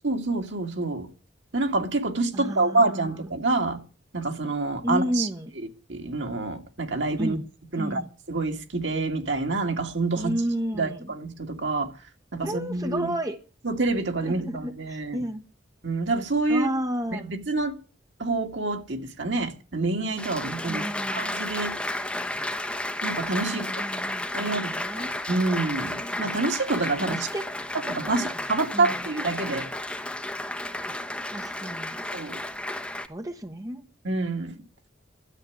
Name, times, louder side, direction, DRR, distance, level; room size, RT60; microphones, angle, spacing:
voice 1, 0.0-1.1 1.5-3.8 4.1-5.3 5.6-7.4 7.7-8.0 8.3-10.3 10.7-11.9 12.3-13.1 13.6-15.2 15.8-16.7 17.1-17.8 18.2-20.8 21.1-21.7 23.0-23.6 24.3-24.7 25.0-27.3 27.9-29.7 32.1-32.4 34.0-34.6, right 3 dB, 75° right, 2.3 m, -27 dB
voice 2, 2.3-3.0 4.8-5.5 7.2-7.4 7.8-8.1 10.2-11.0 12.4-13.4 14.2-15.4 16.5-17.3 20.7-21.4 23.4-25.2 27.0-27.4 27.8-28.3 28.7-28.9 31.3-32.0 33.1-33.8, equal, 20° right, 1.1 m, -32 dB
Applause, 20.2-33.1, left 1 dB, 5° left, 1.1 m, -32 dB
13.0 x 8.4 x 9.5 m
head